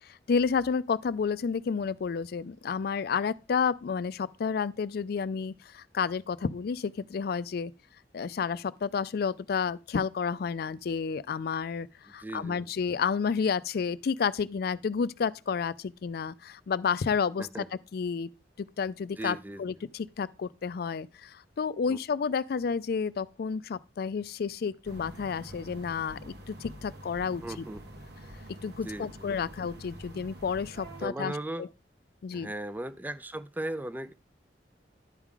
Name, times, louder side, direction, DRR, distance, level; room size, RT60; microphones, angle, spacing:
voice 1, 0.0-7.7 8.1-17.5 17.9-18.3 18.6-27.4 28.6-31.3 31.6-31.7 32.2-32.5, left 6 dB, 60° left, 0.4 m, -31 dB
voice 2, 12.2-12.7 17.4-17.7 19.2-19.6 21.9-22.0 27.4-27.8 28.8-29.3 31.0-31.7 32.3-34.1, right 1 dB, 10° right, 0.4 m, -37 dB
sound 1, 24.8-31.1, right 1 dB, 65° right, 1.2 m, -46 dB
10.5 x 4.8 x 3.7 m
head